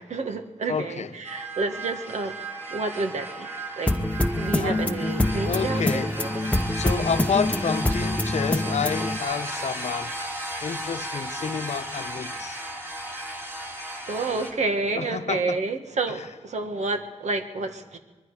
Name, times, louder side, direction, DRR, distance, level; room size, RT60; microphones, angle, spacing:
voice 1, 0.0-3.5 3.8-3.9 4.3-6.3 13.7-13.8 14.1-18.0, right 3 dB, 70° right, 1.7 m, -29 dB
voice 2, 0.7-1.1 4.6-4.8 5.4-6.1 6.7-10.2 10.6-12.6 15.0-15.6 16.1-16.3, left 6 dB, 70° left, 0.9 m, -29 dB
sound 1, 1.2-14.5, right 1 dB, 20° right, 4.3 m, -35 dB
sound 2, 3.9-9.2, left 1 dB, 10° left, 0.8 m, -25 dB
25.0 x 21.5 x 4.9 m
wide cardioid pair, 130°, 12 cm